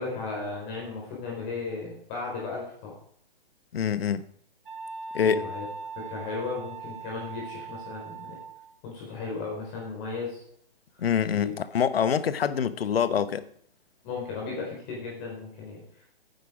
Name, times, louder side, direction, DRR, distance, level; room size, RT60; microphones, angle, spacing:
voice 1, 0.0-2.9 5.1-5.7 6.0-8.4 8.8-10.4 11.3-11.5 14.0-15.8, left 4 dB, 30° left, 3.9 m, -35 dB
voice 2, 3.7-4.2 5.1-5.4 11.0-13.5, left 7 dB, 75° left, 1.0 m, -25 dB
Wind instrument woodwind instrument, 4.6-8.7, right 4 dB, 55° right, 3.3 m, -40 dB
11.0 x 9.5 x 4.9 m
hypercardioid pair, 145°, 30 cm